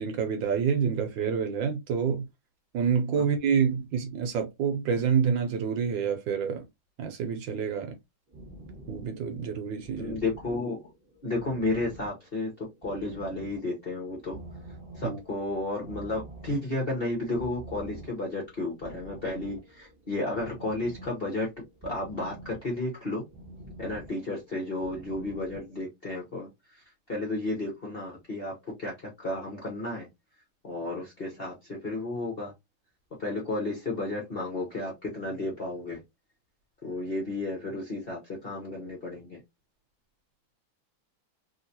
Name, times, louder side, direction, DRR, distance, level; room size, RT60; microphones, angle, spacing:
voice 1, 0.0-2.3 2.7-6.6 7.0-7.9 8.9-10.2 15.0-15.2, right 6 dB, 70° right, 1.3 m, -27 dB
sound 1, 8.3-25.8, right 1 dB, 15° right, 1.3 m, -47 dB
voice 2, 10.0-10.8 11.2-14.4 15.0-21.5 21.8-23.2 23.8-26.5 27.1-30.1 30.6-32.5 33.2-36.0 36.8-39.4, left 2 dB, 40° left, 0.8 m, -32 dB
3.1 x 2.9 x 2.7 m
omnidirectional pair, 2.3 m